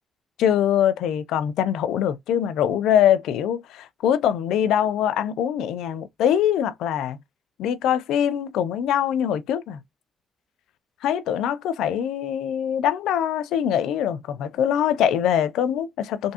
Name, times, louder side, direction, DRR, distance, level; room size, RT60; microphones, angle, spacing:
voice 1, 0.4-7.2 7.6-9.8 11.0-16.3, left 9 dB, 85° left, 0.4 m, -23 dB
3.5 x 2.6 x 2.8 m
cardioid pair, 90°, 0 cm